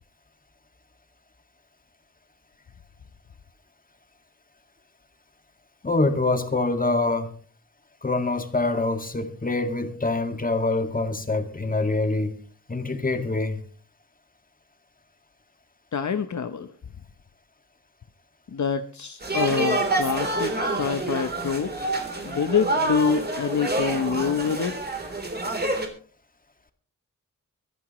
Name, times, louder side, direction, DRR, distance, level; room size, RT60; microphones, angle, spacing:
voice 1, 5.8-7.3 8.0-12.3 12.7-13.6, left 2 dB, 25° left, 7 dB, 2.0 m, -25 dB
voice 2, 15.9-16.7 18.5-22.0 22.2-24.8, left 6 dB, 60° left, 9 dB, 0.9 m, -26 dB
sound 1, 19.2-25.9, right 2 dB, 30° right, 3.5 m, -27 dB
24.0 x 11.0 x 3.1 m, 0.42 s
wide cardioid pair, 95°, 33 cm